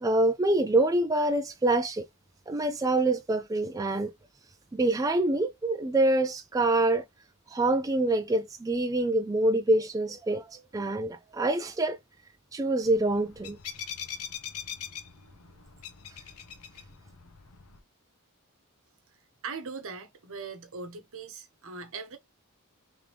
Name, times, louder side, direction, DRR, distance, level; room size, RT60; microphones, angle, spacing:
voice 1, 0.0-2.0 2.5-4.1 4.7-7.0 7.5-12.0 12.5-13.6, right 2 dB, 15° right, 0.3 m, -26 dB
sound 1, 12.8-17.8, left 8 dB, 75° left, 0.9 m, -42 dB
voice 2, 19.4-22.2, right 5 dB, 65° right, 0.9 m, -40 dB
3.5 x 3.4 x 2.9 m
head